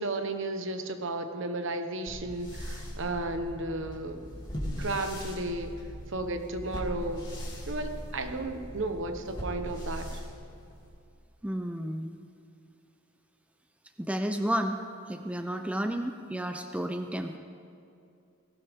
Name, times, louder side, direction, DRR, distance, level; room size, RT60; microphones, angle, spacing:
voice 1, 0.0-4.2 4.8-5.7 6.1-7.2 7.7-10.2, right 2 dB, 60° right, 7 dB, 1.2 m, -33 dB
sound 1, 2.1-11.0, equal, 20° left, 2.9 m, -39 dB
voice 2, 11.4-12.2 14.0-14.8 15.1-17.4, equal, 5° right, 5 dB, 0.6 m, -31 dB
19.5 x 17.5 x 3.7 m, 2.5 s
head